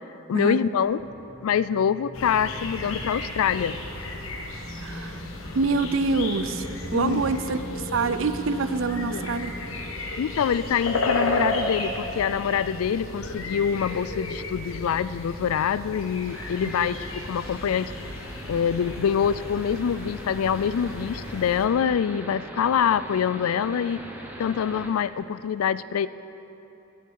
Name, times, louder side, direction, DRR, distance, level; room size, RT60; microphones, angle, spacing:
voice 1, 0.3-1.0 1.4-3.8 6.9-7.4 9.0-9.3 10.2-17.9 18.5-24.1 24.4-26.1, left 7 dB, 90° left, 16 dB, 0.3 m, -25 dB
sound 1, 1.0-12.3, right 1 dB, 30° left, 1.9 m, -42 dB
sound 2, 2.1-21.7, left 2 dB, 75° left, 1.1 m, -34 dB
voice 2, 4.8-5.2 5.5-9.5 16.8-16.9, right 4 dB, 65° right, 11 dB, 0.5 m, -26 dB
sound 3, 16.3-24.9, equal, 10° right, 0.8 m, -42 dB
19.5 x 7.1 x 4.7 m, 3.0 s
head